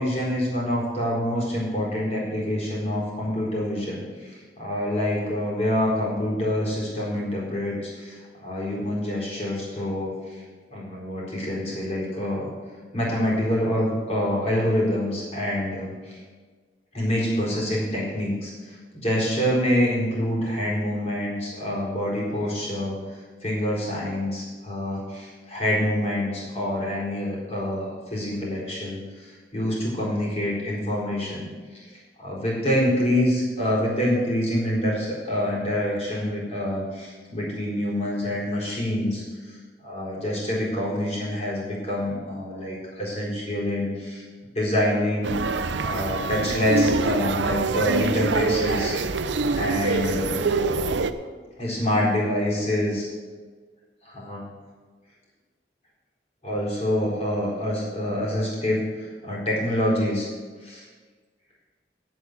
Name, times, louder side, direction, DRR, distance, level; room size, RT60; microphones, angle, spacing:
voice 1, 0.0-10.4 10.7-12.5 12.9-16.2 16.9-23.0 23.4-31.5 31.7-31.9 32.2-44.2 44.5-48.9 49.5-50.4 51.6-53.1 54.0-54.5 56.4-60.3 60.6-60.9, left 1 dB, 35° left, -5 dB, 4.3 m, -26 dB
sound 1, 45.2-51.1, right 3 dB, 90° right, 0.6 m, -25 dB
8.5 x 8.2 x 8.3 m, 1.5 s
head